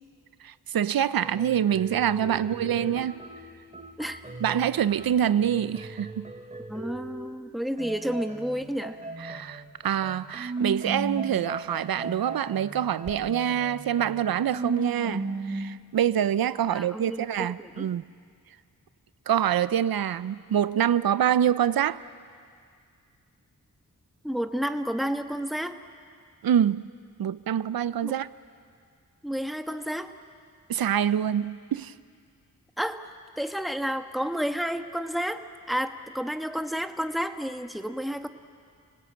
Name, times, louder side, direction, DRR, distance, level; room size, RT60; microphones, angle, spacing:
voice 1, 0.4-3.2 4.4-6.3 9.2-18.0 19.3-22.0 26.4-26.8 27.2-28.3 30.7-31.9, right 9 dB, 85° right, 15 dB, 0.6 m, -26 dB
sound 1, 1.2-7.4 7.8-15.8, right 3 dB, 20° right, 2.6 m, -37 dB
voice 2, 6.7-9.0 16.6-17.3 17.6-17.9 24.2-25.8 28.0-28.2 29.2-30.1 32.8-33.0 33.4-38.3, equal, ahead, 7 dB, 1.4 m, -31 dB
29.5 x 18.5 x 8.9 m, 2.2 s
cardioid pair, 55°, 35 cm